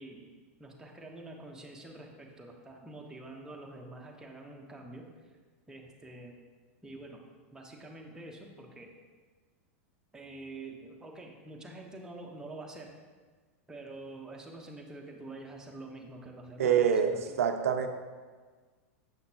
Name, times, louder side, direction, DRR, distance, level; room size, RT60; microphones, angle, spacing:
voice 1, 0.0-5.0 5.7-6.3 6.8-7.2 7.5-8.9 10.1-12.9 13.7-16.8 17.0-17.4, right 2 dB, 10° right, -1 dB, 1.0 m, -46 dB
voice 2, 16.6-17.1 17.4-17.9, right 8 dB, 85° right, 7 dB, 0.5 m, -25 dB
6.7 x 5.7 x 2.9 m, 1.4 s
hypercardioid pair, 110°, 8 cm